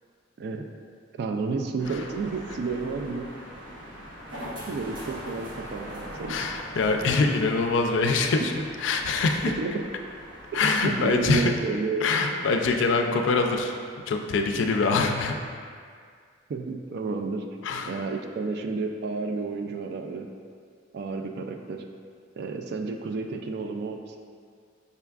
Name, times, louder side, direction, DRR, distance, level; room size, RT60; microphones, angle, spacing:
voice 1, 0.4-0.7 1.1-3.3 4.7-6.5 9.6-9.8 10.8-12.1 16.5-17.4 17.9-20.3 20.9-21.8 22.4-24.2, right 4 dB, 60° right, 4 dB, 0.3 m, -31 dB
sound 1, 1.8-11.2, equal, 80° right, 0.9 m, -42 dB
voice 2, 6.3-9.5 10.5-11.5 12.0-13.7 14.1-15.3 17.6-17.9, left 4 dB, 70° left, 4 dB, 0.4 m, -24 dB
5.6 x 3.4 x 2.3 m, 2.1 s
head